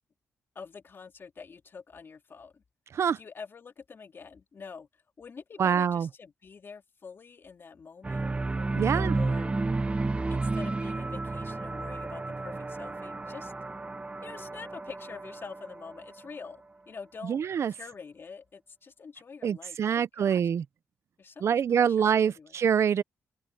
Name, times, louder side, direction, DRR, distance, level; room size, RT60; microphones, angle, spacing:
voice 1, 0.5-2.6 3.1-8.3 8.8-9.5 10.3-13.5 14.2-17.4 17.7-20.5 21.2-22.6, left 5 dB, 45° left, 2.9 m, -46 dB
voice 2, 5.6-6.1 8.7-9.2 17.2-17.7 19.4-20.6 21.4-23.0, right 8 dB, 60° right, 0.6 m, -25 dB
sound 1, 8.0-16.3, right 3 dB, 20° right, 1.2 m, -32 dB
open air
cardioid pair, 90°, 5 cm